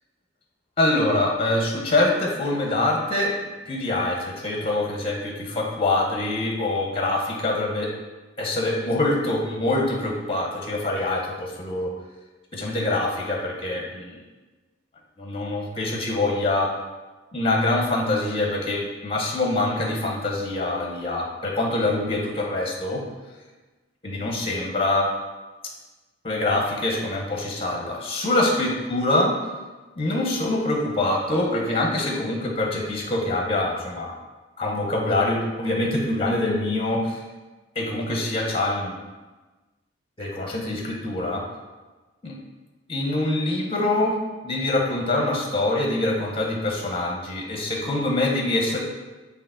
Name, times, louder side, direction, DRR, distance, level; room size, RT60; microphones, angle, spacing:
voice 1, 0.8-3.3 3.7-7.9 8.4-11.9 12.5-14.2 15.2-16.7 17.3-23.0 24.0-25.1 26.2-29.3 30.0-34.1 34.6-37.2 37.8-39.0 40.2-41.5 42.2-42.3 42.9-44.2 44.4-48.8, left 2 dB, 30° left, 0 dB, 0.6 m, -24 dB
4.8 x 2.7 x 3.6 m, 1.2 s
head